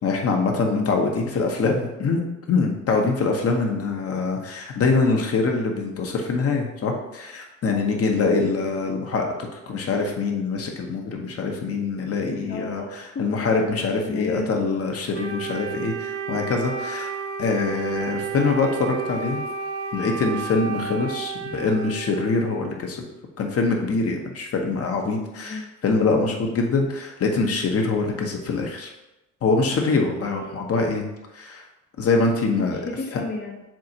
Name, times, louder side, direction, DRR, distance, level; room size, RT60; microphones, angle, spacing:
voice 1, 0.0-2.2 2.5-12.8 13.2-17.1 17.4-19.4 19.9-23.0 23.4-28.9 29.4-31.1 31.3-31.6 32.0-32.8, left 4 dB, 50° left, 2 dB, 0.9 m, -24 dB
voice 2, 12.5-13.3 14.1-14.8 25.4-25.7 30.2-30.6 32.6-33.6, left 4 dB, 35° left, 0 dB, 0.5 m, -32 dB
Wind instrument woodwind instrument, 15.1-22.8, right 5 dB, 50° right, 0.5 m, -32 dB
7.2 x 2.5 x 2.8 m, 0.97 s
cardioid pair, 90°, 30 cm